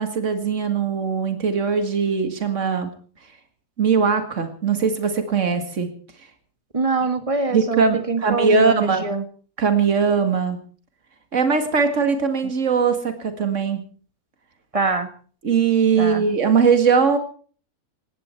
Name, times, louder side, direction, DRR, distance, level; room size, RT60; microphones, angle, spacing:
voice 1, 0.0-2.9 3.8-5.9 7.5-9.1 9.6-10.6 11.3-13.8 15.4-17.2, right 5 dB, 55° right, 8 dB, 2.3 m, -20 dB
voice 2, 6.7-9.2 14.7-15.1 16.0-16.2, right 4 dB, 25° right, 10 dB, 1.5 m, -24 dB
18.5 x 16.0 x 4.5 m, 0.42 s
omnidirectional pair, 1.6 m